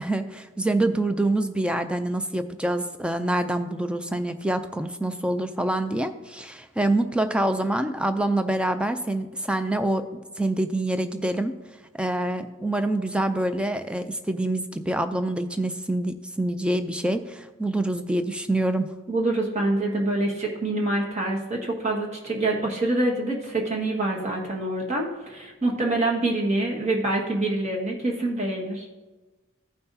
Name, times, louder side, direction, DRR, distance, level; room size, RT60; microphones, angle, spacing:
voice 1, 0.0-11.5 12.0-18.9, right 1 dB, 5° right, 9 dB, 0.3 m, -26 dB
voice 2, 19.1-28.9, right 2 dB, 35° right, -1 dB, 1.6 m, -26 dB
15.0 x 5.8 x 2.7 m, 1.2 s
head